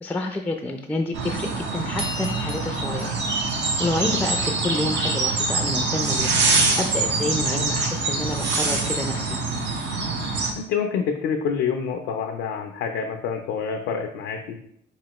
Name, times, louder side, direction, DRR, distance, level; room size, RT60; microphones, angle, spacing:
voice 1, 0.0-3.1 3.8-6.4 6.8-9.4, left 2 dB, 10° left, 4 dB, 0.3 m, -28 dB
sound 1, 1.1-10.5, right 3 dB, 65° right, 0.7 m, -24 dB
sound 2, 2.0-4.5, left 2 dB, 30° right, 1.1 m, -37 dB
voice 2, 10.6-14.6, left 6 dB, 90° left, 3 dB, 0.4 m, -27 dB
4.2 x 3.0 x 2.9 m, 0.70 s
cardioid pair, 90°, 20 cm